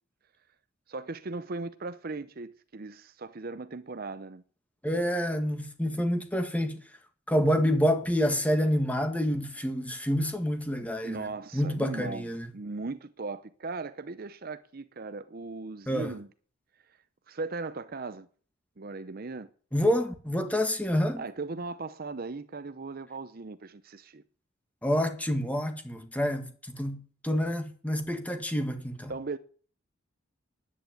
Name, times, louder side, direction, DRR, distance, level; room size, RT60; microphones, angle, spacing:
voice 1, 0.9-4.4 11.0-12.3 12.5-16.3 17.3-18.3 18.8-19.5 21.2-24.2 29.1-29.4, right 3 dB, 45° right, 0.7 m, -38 dB
voice 2, 4.8-6.8 7.3-12.5 15.9-16.2 19.7-21.2 24.8-29.1, equal, 5° left, 1.8 m, -28 dB
10.5 x 9.5 x 9.1 m
head